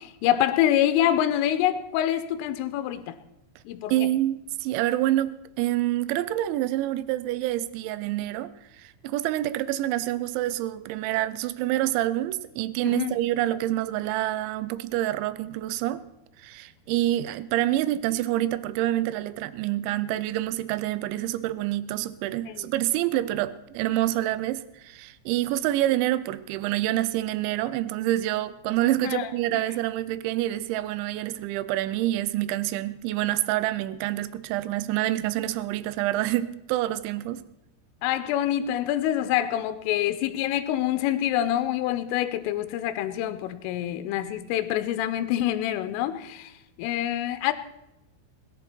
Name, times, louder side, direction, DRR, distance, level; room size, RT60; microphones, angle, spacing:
voice 1, 0.0-3.2 3.7-3.9 12.8-13.2 22.5-22.7 29.0-29.3 38.0-46.5 46.8-47.5, left 12 dB, 90° left, 3.3 m, -26 dB
voice 2, 3.9-8.5 8.8-16.0 16.4-37.4, right 14 dB, 80° right, 2.8 m, -27 dB
21.0 x 11.0 x 4.4 m
omnidirectional pair, 5.7 m